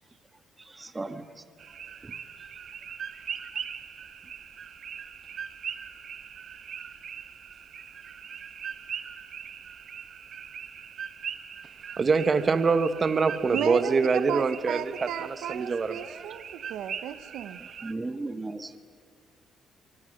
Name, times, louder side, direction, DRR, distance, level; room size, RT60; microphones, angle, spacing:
voice 1, 0.6-1.4 2.0-2.1 17.8-18.8, right 2 dB, 20° right, 1.5 m, -36 dB
sound 1, 1.6-17.9, right 7 dB, 55° right, 1.3 m, -41 dB
voice 2, 12.0-14.8 15.5-16.2, right 4 dB, 35° right, 1.2 m, -24 dB
voice 3, 13.5-17.6, right 10 dB, 85° right, 1.0 m, -34 dB
25.0 x 24.5 x 6.6 m
cardioid pair, 100°, 0 cm